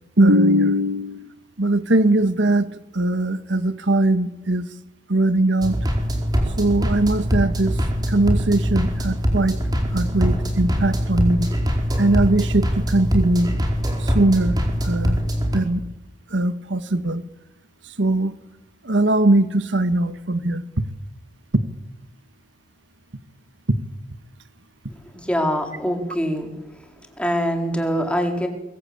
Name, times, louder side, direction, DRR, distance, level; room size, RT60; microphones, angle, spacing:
voice 1, 0.2-2.7 2.9-4.7 5.1-5.8 6.6-7.8 8.1-9.6 9.9-11.5 12.0-13.6 14.0-15.2 15.5-15.8 16.3-17.2 17.9-18.3 18.8-20.8 21.5-21.6, right 1 dB, 90° right, 11 dB, 1.5 m, -20 dB
sound 1, 5.6-15.6, equal, 20° right, 4.7 m, -23 dB
voice 2, 25.2-26.5 27.2-28.5, equal, 5° left, 3 dB, 4.2 m, -23 dB
24.0 x 22.5 x 8.7 m, 0.97 s
head